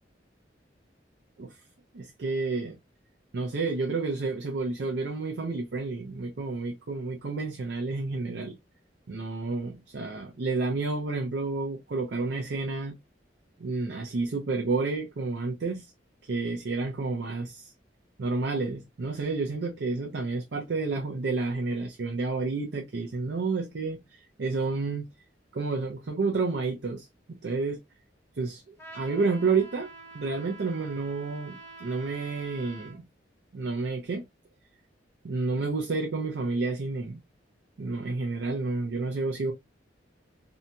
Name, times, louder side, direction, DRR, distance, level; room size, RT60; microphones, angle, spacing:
voice 1, 1.9-2.8 3.3-8.6 9.1-13.0 13.6-15.9 16.2-17.7 18.2-25.1 25.5-27.8 28.3-29.9 30.1-33.0 33.5-34.2 35.2-37.2 37.8-39.5, right 3 dB, 65° right, 0.5 m, -30 dB
Trumpet, 28.8-33.0, right 3 dB, 15° left, 0.9 m, -47 dB
2.7 x 2.2 x 2.6 m
head